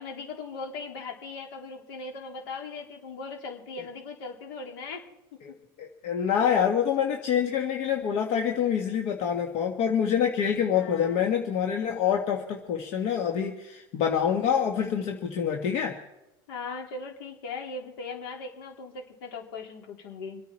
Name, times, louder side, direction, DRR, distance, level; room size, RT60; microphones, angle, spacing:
voice 1, 0.0-5.1 10.7-11.2 16.5-20.4, left 4 dB, 75° left, 1 dB, 3.7 m, -39 dB
voice 2, 5.8-16.0, left 8 dB, 60° left, 3 dB, 1.7 m, -26 dB
26.5 x 9.4 x 4.5 m, 0.93 s
supercardioid pair, 110°, 12 cm